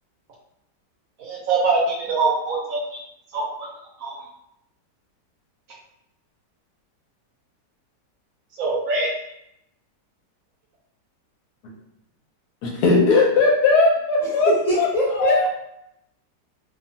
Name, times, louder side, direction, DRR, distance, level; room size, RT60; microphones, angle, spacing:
voice 1, 1.2-3.0 3.3-3.7 4.0-4.2 8.6-9.1, right 3 dB, 65° right, -2 dB, 0.8 m, -23 dB
voice 2, 12.6-14.5 14.8-14.9 15.2-15.5, left 3 dB, 75° left, 0 dB, 1.1 m, -18 dB
voice 3, 14.2-15.5, equal, 40° left, -11 dB, 0.6 m, -23 dB
2.7 x 2.3 x 2.6 m, 0.78 s
omnidirectional pair, 1.9 m